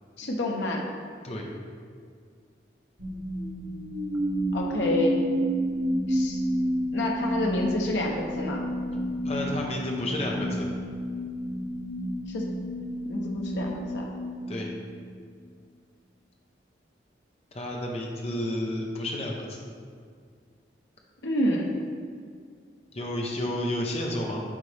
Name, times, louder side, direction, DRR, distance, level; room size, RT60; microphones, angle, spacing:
voice 1, 0.2-0.8 4.5-5.2 6.1-6.4 6.9-8.6 12.3-12.4 13.0-14.0 21.2-21.7, left 1 dB, 80° left, -1 dB, 0.8 m, -28 dB
sound 1, 3.0-15.2, equal, 85° right, 1.5 m, -30 dB
voice 2, 9.2-10.7 14.5-14.7 17.5-19.7 22.9-24.4, left 1 dB, 35° left, -1 dB, 0.8 m, -31 dB
8.9 x 4.2 x 3.4 m, 2.1 s
head